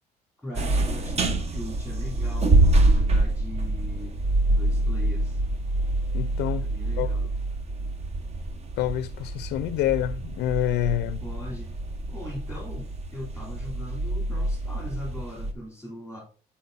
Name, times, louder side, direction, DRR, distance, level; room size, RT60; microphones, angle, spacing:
voice 1, 0.4-4.2 4.5-5.4 6.6-7.3 11.2-11.7 12.1-16.2, equal, 10° right, 3.2 m, -40 dB
railway station lift, 0.6-15.5, right 2 dB, 40° right, 1.0 m, -26 dB
voice 2, 6.1-6.7 7.0-7.1 8.8-11.2, left 12 dB, 80° left, 0.4 m, -27 dB
8.2 x 4.2 x 4.0 m
cardioid pair, 110°, 17 cm